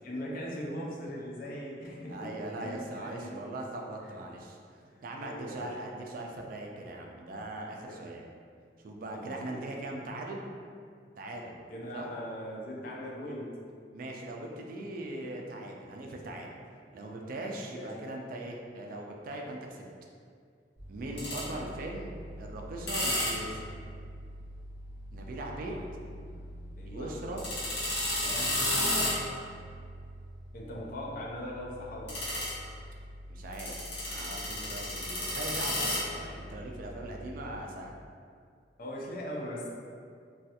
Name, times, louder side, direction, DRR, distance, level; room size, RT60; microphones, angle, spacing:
voice 1, 0.0-3.4 4.0-4.1 4.9-5.7 7.8-8.1 9.1-9.6 11.7-13.6 17.7-17.9 21.1-21.6 25.6-25.9 26.2-27.1 28.2-28.6 30.5-32.3 38.8-39.7, equal, 55° left, -3 dB, 0.5 m, -40 dB
voice 2, 2.1-4.6 5.0-8.3 8.8-10.5 11.2-11.6 11.9-12.1 13.9-16.5 16.9-19.8 20.9-22.1 22.4-23.6 25.1-25.8 26.9-27.4 28.2-29.0 33.3-33.7 34.0-37.9, right 1 dB, 50° right, 0 dB, 0.3 m, -40 dB
sound 1, 20.8-37.5, left 1 dB, 80° left, 0.9 m, -35 dB
3.2 x 2.3 x 2.8 m, 2.2 s
head